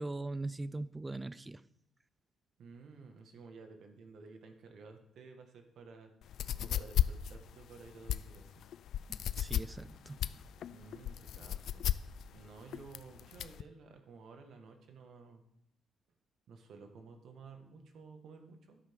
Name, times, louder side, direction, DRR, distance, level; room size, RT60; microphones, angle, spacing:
voice 1, 0.0-1.6 9.1-10.4, right 2 dB, 15° right, 0.5 m, -41 dB
voice 2, 2.6-6.1 6.6-8.5 10.7-11.8 12.3-15.4 16.5-18.8, right 4 dB, 70° right, 1.7 m, -53 dB
sound 1, 6.2-13.6, left 11 dB, 70° left, 0.4 m, -34 dB
12.5 x 10.5 x 3.7 m
cardioid pair, 90°, 0 cm